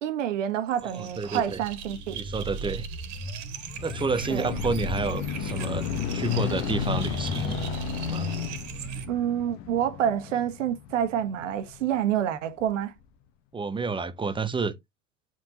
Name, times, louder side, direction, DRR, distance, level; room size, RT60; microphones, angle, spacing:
voice 1, 0.0-2.2 4.3-4.5 9.1-12.9, right 10 dB, 65° right, 1.4 m, -28 dB
sound 1, 0.7-9.1, right 4 dB, 45° right, 1.9 m, -36 dB
voice 2, 0.9-1.6 2.1-2.9 3.8-7.6 8.1-8.3 13.5-14.7, right 4 dB, 10° right, 0.8 m, -30 dB
sound 2, 3.2-12.0 12.6-12.7, left 10 dB, 45° left, 1.3 m, -33 dB
8.8 x 5.6 x 2.9 m
figure-of-eight pair, 75°, 40 cm